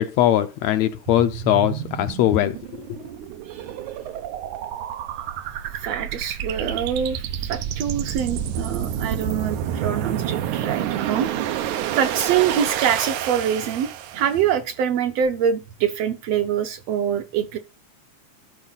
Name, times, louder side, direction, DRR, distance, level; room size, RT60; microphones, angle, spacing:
voice 1, 0.0-3.1, left 12 dB, 75° left, 1.7 m, -21 dB
sound 1, 1.1-14.5, right 10 dB, 90° right, 2.3 m, -29 dB
voice 2, 3.4-4.0 5.8-11.3 11.9-17.6, right 8 dB, 70° right, 1.6 m, -25 dB
13.0 x 4.7 x 4.0 m
omnidirectional pair, 3.4 m